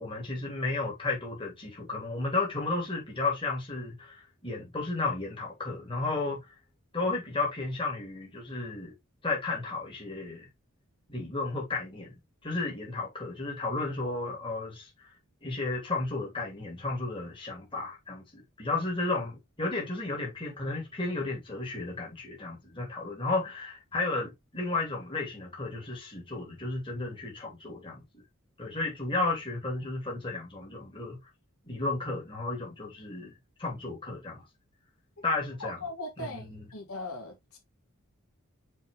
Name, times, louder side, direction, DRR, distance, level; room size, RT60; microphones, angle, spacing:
voice 1, 0.0-6.6 6.9-8.9 9.2-10.5 11.1-12.1 12.4-15.1 15.4-28.2 28.6-31.2 31.6-34.4 35.2-35.8 36.3-36.7, left 3 dB, 25° left, 3.1 m, -33 dB
voice 2, 35.6-36.4 36.7-37.6, left 2 dB, 85° left, 3.4 m, -39 dB
6.5 x 4.8 x 3.5 m
head